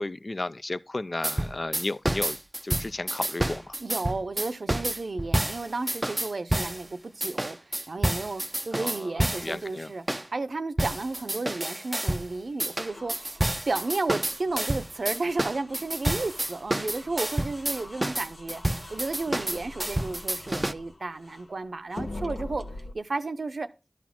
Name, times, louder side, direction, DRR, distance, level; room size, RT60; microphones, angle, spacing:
voice 1, 0.0-2.4 2.6-3.8 8.7-9.9, left 2 dB, 50° left, 0.4 m, -33 dB
sound 1, 1.2-6.8 7.2-9.6 10.1-10.3 10.8-12.3 12.6-20.7, right 1 dB, 25° right, 0.4 m, -29 dB
voice 2, 3.8-10.0 10.3-18.6 18.9-22.6 22.9-23.7, right 3 dB, 85° right, 0.6 m, -33 dB
sound 2, 12.7-21.5 21.9-22.9, left 2 dB, 85° left, 0.9 m, -43 dB
12.0 x 4.1 x 5.9 m
wide cardioid pair, 45°, 0 cm